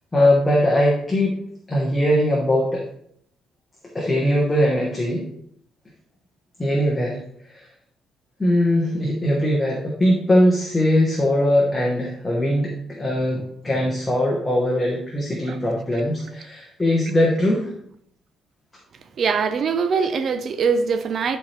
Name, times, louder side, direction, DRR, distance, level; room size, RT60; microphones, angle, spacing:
voice 1, 0.1-1.4 1.7-2.8 3.9-5.3 6.6-7.2 7.5-7.7 8.4-17.7, left 1 dB, 10° left, 1.1 m, -20 dB
voice 2, 19.2-21.4, right 5 dB, 40° right, 0.6 m, -22 dB
10.5 x 4.4 x 3.3 m
cardioid pair, 170°, 0 cm